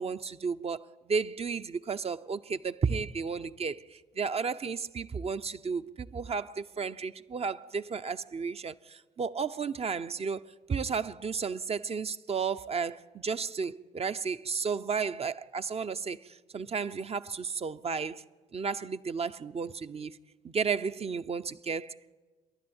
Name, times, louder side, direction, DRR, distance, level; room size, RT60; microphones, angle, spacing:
voice 1, 0.0-18.2 18.5-20.2 20.4-22.1, right 5 dB, 35° right, 0.9 m, -33 dB
28.0 x 11.0 x 9.0 m
supercardioid pair, 65°, 17 cm